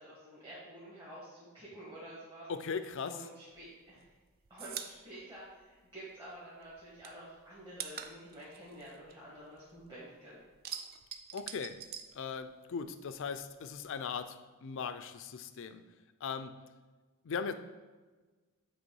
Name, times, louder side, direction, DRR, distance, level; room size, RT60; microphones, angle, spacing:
voice 1, 0.0-2.5 3.0-4.1 4.5-10.4, right 1 dB, 20° right, -9 dB, 1.6 m, -49 dB
voice 2, 2.5-3.2 11.3-11.8 12.1-15.8 16.2-16.6 17.2-17.5, left 6 dB, 60° left, 10 dB, 0.4 m, -38 dB
sound 1, 3.5-6.3 6.6-9.9 10.2-12.8 13.1-14.2, right 8 dB, 45° right, 0.4 m, -45 dB
8.0 x 3.1 x 4.6 m, 1.3 s
head